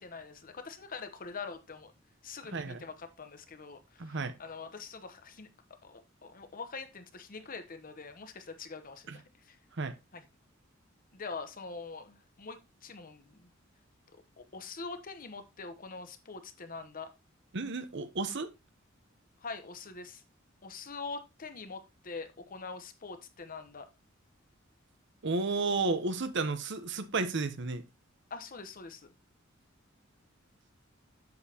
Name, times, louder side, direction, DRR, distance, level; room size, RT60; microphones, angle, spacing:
voice 1, 0.0-1.9 2.2-5.5 5.8-9.6 10.1-10.2 11.1-13.5 14.4-17.1 19.4-20.2 20.6-23.9 28.3-29.1, left 4 dB, 45° left, 1.0 m, -44 dB
voice 2, 2.5-2.8 4.0-4.3 9.1-9.2 9.7-10.0 17.5-18.5 25.2-27.9, right 3 dB, 60° right, 0.9 m, -32 dB
7.9 x 7.3 x 2.9 m
head